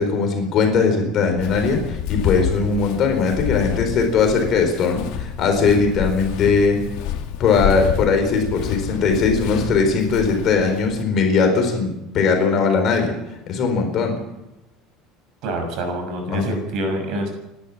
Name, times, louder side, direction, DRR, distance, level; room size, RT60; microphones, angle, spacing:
voice 1, 0.0-6.8 7.4-13.1 13.5-14.2 16.2-16.5, left 5 dB, 35° left, 4 dB, 4.6 m, -19 dB
Walk footsteps, 1.4-11.0, left 9 dB, 60° left, 2.3 m, -29 dB
voice 2, 15.4-17.3, right 1 dB, 50° right, 5 dB, 6.3 m, -26 dB
28.5 x 12.0 x 7.5 m, 0.92 s
cardioid pair, 175°, 0 cm